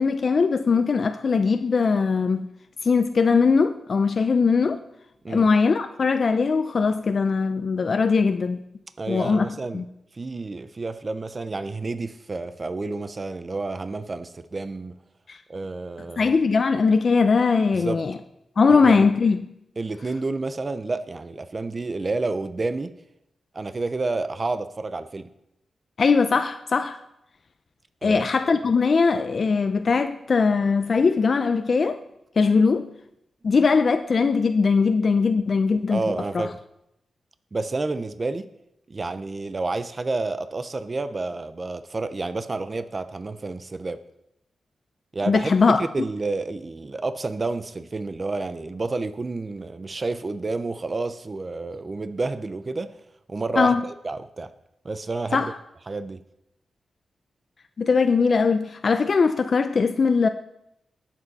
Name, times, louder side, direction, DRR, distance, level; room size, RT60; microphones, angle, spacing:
voice 1, 0.0-2.5 2.8-4.8 5.3-8.6 9.1-9.8 15.3-15.4 16.2-18.2 18.6-19.5 26.0-27.0 28.0-32.0 32.4-32.9 33.4-36.0 36.3-36.5 45.3-45.8 53.6-53.8 55.3-55.5 57.8-60.3, left 4 dB, 50° left, 0.5 m, -20 dB
voice 2, 9.0-9.8 10.1-15.0 15.5-16.3 17.7-18.0 18.7-18.9 19.8-23.0 23.5-25.3 28.0-28.2 35.9-36.6 37.5-38.5 38.9-44.0 45.1-45.5 45.8-52.9 53.3-54.5 54.8-55.5 55.9-56.2, right 3 dB, 35° right, 0.6 m, -30 dB
19.0 x 7.3 x 4.1 m
cardioid pair, 90°, 0 cm